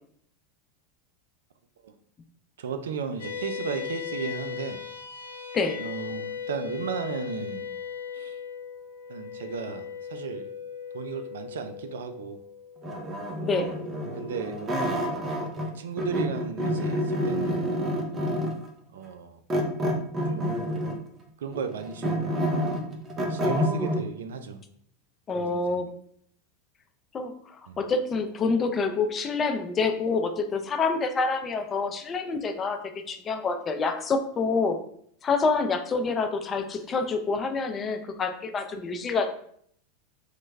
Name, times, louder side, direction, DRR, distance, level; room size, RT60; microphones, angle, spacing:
voice 1, 2.6-4.8 5.8-7.7 8.1-8.4 9.1-10.5 10.9-12.4 14.0-14.6 15.7-17.7 18.9-19.4 20.3-20.6 21.4-22.3 23.3-24.6 25.3-25.8 27.7-27.8, right 6 dB, 85° right, 8 dB, 0.3 m, -35 dB
sound 1, 3.2-15.8, left 7 dB, 85° left, 0.6 m, -39 dB
sound 2, 12.8-15.7 16.0-18.7 19.5-21.1 21.5-24.0, equal, 30° right, 0.6 m, -28 dB
voice 2, 25.3-25.9 27.1-32.8 33.1-34.8 35.2-39.3, left 4 dB, 30° left, 7 dB, 0.4 m, -27 dB
3.1 x 2.1 x 3.4 m, 0.65 s
hypercardioid pair, 100°, 0 cm